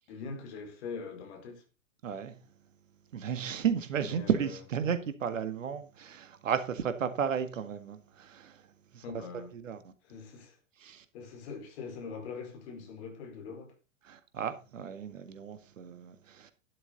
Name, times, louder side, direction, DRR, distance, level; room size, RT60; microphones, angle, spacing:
voice 1, 0.1-1.6 4.0-4.4 9.0-9.5 10.1-10.6 11.1-13.7, left 5 dB, 55° left, 4.6 m, -42 dB
voice 2, 2.0-2.4 3.1-9.9 10.8-11.1 14.0-16.5, right 7 dB, 70° right, 1.9 m, -34 dB
12.0 x 11.0 x 4.0 m
figure-of-eight pair, 100°, 40 cm